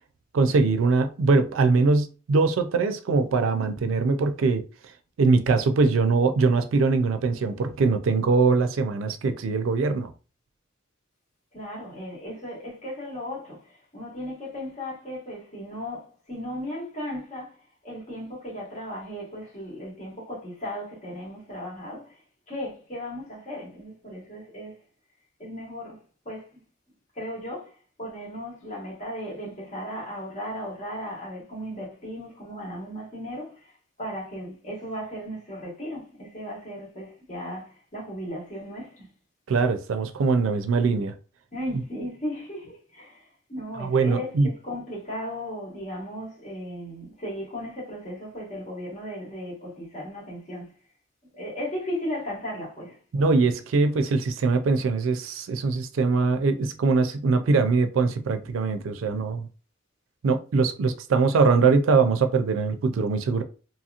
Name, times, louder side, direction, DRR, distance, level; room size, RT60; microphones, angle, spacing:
voice 1, 0.3-4.6 5.2-10.1 39.5-41.1 43.8-44.5 53.1-59.5 60.2-63.4, right 4 dB, 90° right, 0.4 m, -22 dB
voice 2, 11.5-17.6 17.8-22.2 22.5-24.8 25.4-26.0 26.2-26.5 27.1-27.7 28.0-33.7 34.0-39.1 41.5-50.7 51.3-53.0, equal, 35° left, 1.4 m, -36 dB
2.9 x 2.8 x 2.4 m
head